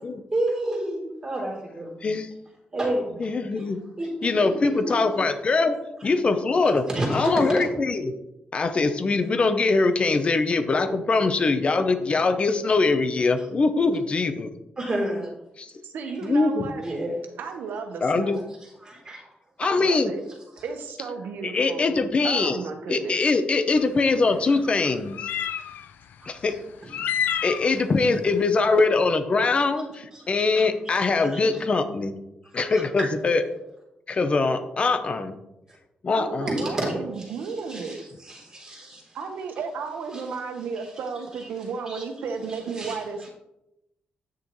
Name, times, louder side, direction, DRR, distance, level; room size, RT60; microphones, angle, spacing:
voice 1, 0.3-2.0 2.7-3.7 4.0-5.0 6.6-7.5 13.4-13.5 14.8-15.3 16.8-17.1 18.6-19.3 20.6-20.7 24.5-24.6 26.2-26.6 27.0-27.1 30.1-30.2 30.5-31.0 31.2-31.4 32.6-33.1 35.7-35.8 36.5-36.9 37.4-39.2 40.1-40.2 40.8-40.9 41.4-41.5 41.9-42.0 42.5-43.0, right 1 dB, 20° right, -4 dB, 3.4 m, -31 dB
voice 2, 3.2-3.8 4.2-5.8 6.0-6.8 7.1-8.1 8.5-14.5 15.6-15.7 16.2-16.7 18.0-18.4 19.6-20.1 21.4-22.6 22.9-25.2 26.3-26.6 27.4-32.1 32.5-33.4 34.1-35.4 36.0-36.5, left 3 dB, 35° left, 9 dB, 0.8 m, -22 dB
voice 3, 4.4-4.7 15.8-16.8 17.4-18.5 19.6-20.2 20.6-22.0 22.2-23.2 36.1-38.0 39.1-43.3, right 5 dB, 90° right, 5 dB, 1.2 m, -33 dB
sound 1, 23.8-23.9 25.1-25.9 26.9-27.7, left 9 dB, 90° left, 0.4 m, -28 dB
9.5 x 6.8 x 3.1 m, 0.88 s
cardioid pair, 120°, 3 cm